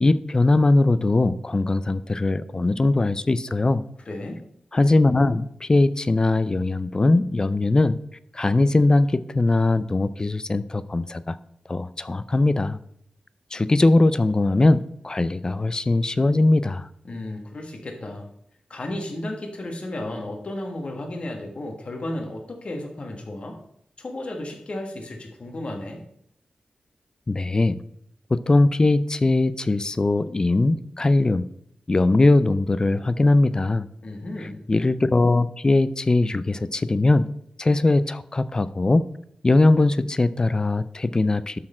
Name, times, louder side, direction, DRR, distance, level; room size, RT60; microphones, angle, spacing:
voice 1, 0.0-3.8 4.7-8.0 8.3-11.4 11.7-12.8 13.5-16.9 27.3-27.8 28.3-31.5 31.9-33.9 34.7-37.3 37.6-39.0 39.4-41.6, left 2 dB, 30° left, 15 dB, 0.4 m, -20 dB
voice 2, 4.0-4.4 17.0-18.3 18.7-23.6 24.0-26.0 34.0-34.6, left 1 dB, 50° left, 2 dB, 1.5 m, -33 dB
12.0 x 4.3 x 4.3 m, 0.74 s
wide cardioid pair, 85°, 3 cm